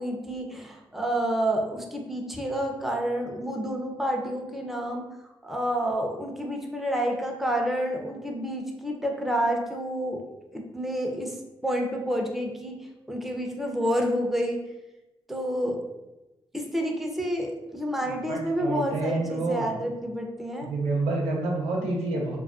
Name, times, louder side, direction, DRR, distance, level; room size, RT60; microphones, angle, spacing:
voice 1, 0.0-5.0 5.4-11.4 11.6-12.8 13.1-14.6 15.3-15.8 16.5-20.7, equal, ahead, 1 dB, 0.5 m, -29 dB
voice 2, 18.3-19.7 20.6-22.4, right 2 dB, 90° right, -1 dB, 0.4 m, -28 dB
2.4 x 2.2 x 2.3 m, 1.0 s
supercardioid pair, 50°, 10 cm